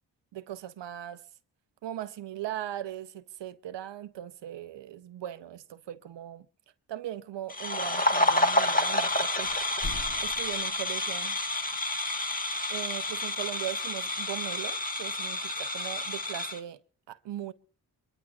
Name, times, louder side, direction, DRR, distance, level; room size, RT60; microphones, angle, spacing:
voice 1, 0.3-1.2 1.8-6.5 6.9-9.6 9.8-9.9 10.2-11.4 12.7-16.8 17.1-17.5, right 12 dB, 85° right, 0.6 m, -39 dB
sound 1, 7.5-16.6, left 2 dB, 20° left, 1.3 m, -29 dB
sound 2, 8.9-9.1 9.4-11.5, left 3 dB, 45° left, 1.1 m, -42 dB
23.5 x 23.0 x 2.4 m
cardioid pair, 45°, 41 cm